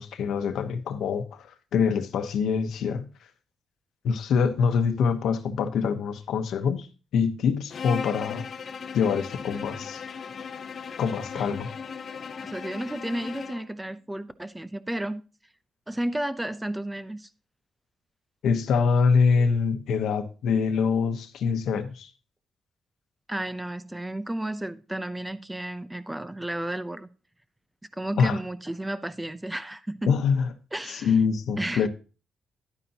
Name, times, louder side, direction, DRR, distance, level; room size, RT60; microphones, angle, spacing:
voice 1, 0.0-3.1 4.0-6.9 7.1-8.5 8.9-10.0 11.0-11.7 18.4-22.1 28.2-28.4 30.1-30.5 30.9-31.9, left 6 dB, 80° left, 1.1 m, -25 dB
Bowed string instrument, 7.7-13.7, left 6 dB, 50° left, 0.8 m, -37 dB
voice 2, 12.4-15.2 15.9-17.3 23.3-27.1 27.9-30.2 30.7-31.1 31.6-31.9, right 1 dB, 10° right, 0.7 m, -32 dB
11.0 x 9.5 x 2.9 m
cardioid pair, 105°, 0 cm